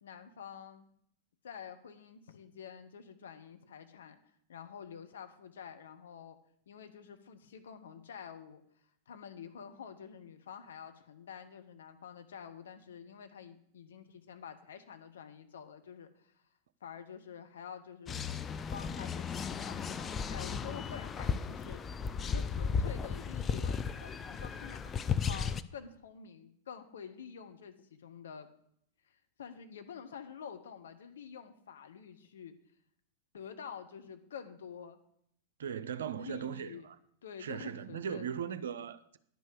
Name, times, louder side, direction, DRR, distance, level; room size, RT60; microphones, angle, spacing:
voice 1, 0.0-0.9 1.4-4.2 4.5-6.4 6.7-8.6 9.1-16.4 16.8-18.2 18.7-21.8 22.2-28.5 29.0-32.5 33.3-35.0 36.2-36.9 37.2-38.3, left 7 dB, 65° left, 0.9 m, -48 dB
sound 1, 18.1-25.6, left 6 dB, 20° left, 0.4 m, -35 dB
voice 2, 35.6-37.0 37.4-39.2, right 8 dB, 65° right, 0.5 m, -38 dB
10.5 x 5.4 x 6.7 m
figure-of-eight pair, 90°, 0 cm